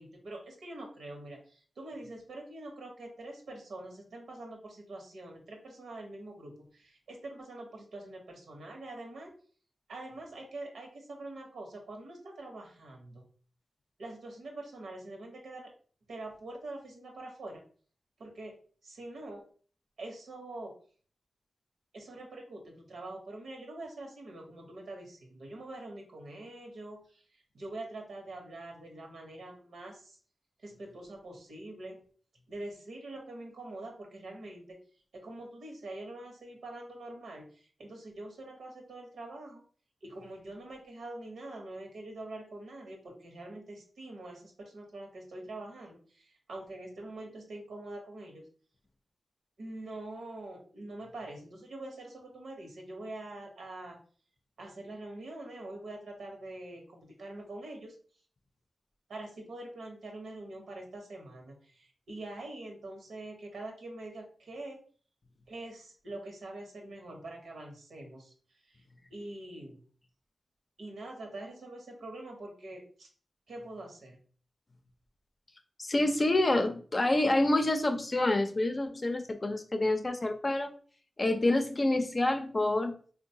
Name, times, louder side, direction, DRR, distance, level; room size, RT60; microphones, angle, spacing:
voice 1, 0.0-9.3 9.9-13.2 14.0-15.7 16.1-17.6 18.2-19.5 20.0-20.8 21.9-30.2 30.6-32.0 32.5-34.8 35.1-39.6 40.0-48.4 49.6-54.0 54.6-57.9 59.1-64.8 65.5-68.3 68.6-68.8 69.1-69.8 70.8-73.1 73.5-74.2, right 2 dB, 90° right, 1 dB, 0.9 m, -44 dB
voice 2, 75.8-80.7 81.2-83.0, left 2 dB, 40° left, 6 dB, 0.5 m, -27 dB
3.7 x 2.2 x 2.7 m, 0.43 s
cardioid pair, 55°, 0 cm